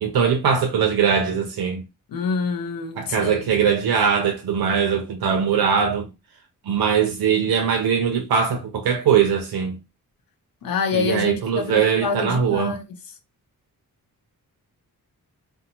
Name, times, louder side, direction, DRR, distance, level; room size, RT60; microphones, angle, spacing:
voice 1, 0.0-1.8 3.0-6.1 6.7-9.8 10.9-12.8, right 7 dB, 90° right, 0.6 m, -21 dB
voice 2, 2.1-3.7 10.6-12.8, left 5 dB, 70° left, 0.6 m, -27 dB
2.7 x 2.0 x 2.8 m
wide cardioid pair, 105°, 36 cm